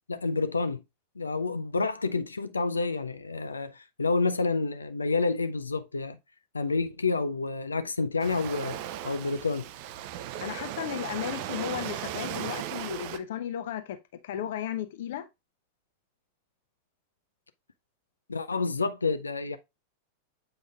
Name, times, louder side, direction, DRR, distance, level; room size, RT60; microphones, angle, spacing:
voice 1, 0.1-0.8 1.2-6.2 6.5-8.8 9.0-9.7 18.3-19.6, left 4 dB, 75° left, 0.4 m, -29 dB
Waves surf, 8.2-13.2, right 12 dB, 45° right, 0.6 m, -37 dB
voice 2, 10.4-14.0 14.2-15.3, left 10 dB, 55° left, 0.8 m, -34 dB
7.7 x 5.2 x 2.4 m
figure-of-eight pair, 90°, 0 cm